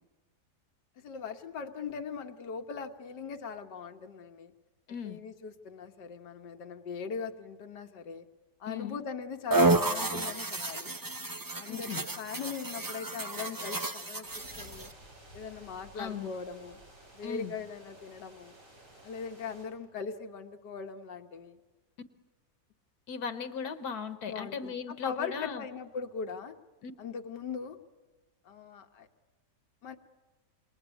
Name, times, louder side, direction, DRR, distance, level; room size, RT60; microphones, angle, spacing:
voice 1, 1.0-4.5 5.0-8.3 8.6-11.0 11.6-11.9 12.2-14.3 14.6-14.9 15.3-16.8 17.1-18.6 19.0-21.6 24.3-26.6 27.0-27.8 28.5-29.1 29.8-30.0, left 6 dB, 90° left, 6 dB, 1.9 m, -40 dB
voice 2, 4.9-5.2 8.7-9.0 11.9-12.0 15.9-16.3 17.2-17.5 23.1-25.6 26.8-26.9, left 6 dB, 65° left, 11 dB, 1.6 m, -37 dB
sound 1, 9.5-14.9, right 3 dB, 30° right, 0.4 m, -31 dB
sound 2, 14.2-19.7, equal, 90° right, 6.3 m, -54 dB
28.0 x 21.5 x 8.3 m, 1.2 s
omnidirectional pair, 1.8 m